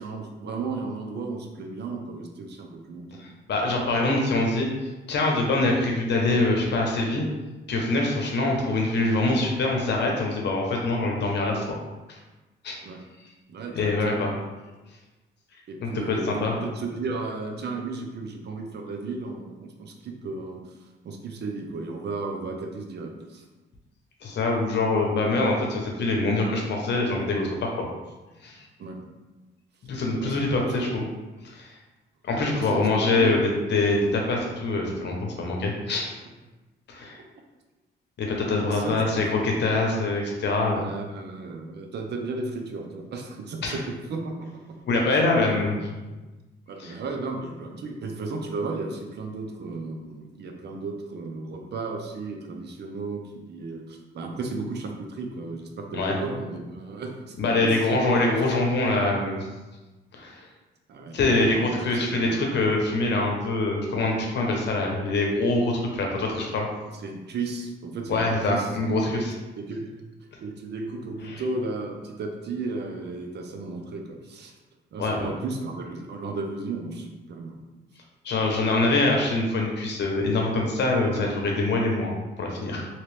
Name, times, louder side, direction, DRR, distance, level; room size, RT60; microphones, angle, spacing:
voice 1, 0.0-3.2 8.3-8.4 12.8-13.0 13.5-13.9 15.7-23.4 28.8-29.1 30.2-30.4 30.8-30.9 32.5-33.4 35.6-35.8 38.7-39.0 40.7-44.5 46.7-58.2 60.9-62.4 66.9-69.3 69.6-70.0 70.4-74.5 74.9-77.6, right 3 dB, 60° right, 2 dB, 0.6 m, -34 dB
voice 2, 3.2-4.7 5.1-7.2 7.7-11.8 12.1-12.2 12.6-12.7 13.7-14.3 15.8-16.5 24.2-27.7 28.4-28.6 29.8-31.0 31.4-31.7 32.2-36.1 36.9-37.2 38.2-40.9 43.6-43.8 44.9-45.9 46.8-46.9 55.9-56.1 57.4-59.5 60.1-60.4 61.1-66.7 68.1-69.3 71.3-71.4 75.0-75.3 78.2-82.9, left 2 dB, 60° left, 0 dB, 0.9 m, -24 dB
3.0 x 2.9 x 3.3 m, 1.1 s
cardioid pair, 90°, 20 cm